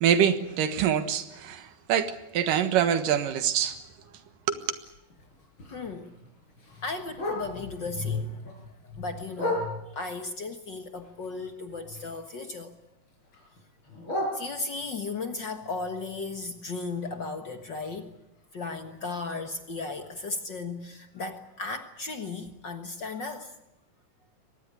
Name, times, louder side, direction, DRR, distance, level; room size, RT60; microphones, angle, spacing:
voice 1, 0.0-3.8 4.5-4.6, right 9 dB, 70° right, 3.0 m, -25 dB
Bark, 4.6-7.8 8.2-10.1 10.6-12.4 12.7-15.0 15.5-19.4 19.7-19.8 20.1-20.5 20.9-21.0 21.4-21.5 22.0-22.1, left 1 dB, 35° left, 6.8 m, -38 dB
voice 2, 5.7-6.1 6.8-12.7 14.3-18.1 18.5-23.5, left 3 dB, 50° left, 1.4 m, -35 dB
23.0 x 19.0 x 9.7 m
omnidirectional pair, 4.0 m